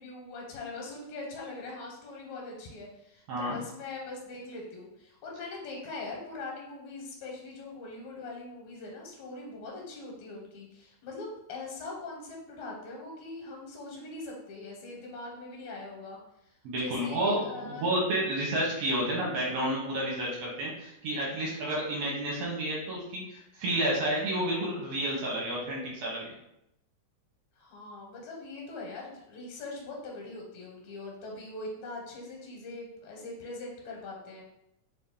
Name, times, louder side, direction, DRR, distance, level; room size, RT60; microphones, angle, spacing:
voice 1, 0.0-17.9 27.6-34.4, left 2 dB, 75° left, -1 dB, 2.0 m, -42 dB
voice 2, 3.3-3.6 16.6-26.2, right 1 dB, 70° right, -4 dB, 1.9 m, -30 dB
4.4 x 2.6 x 3.6 m, 0.81 s
omnidirectional pair, 3.4 m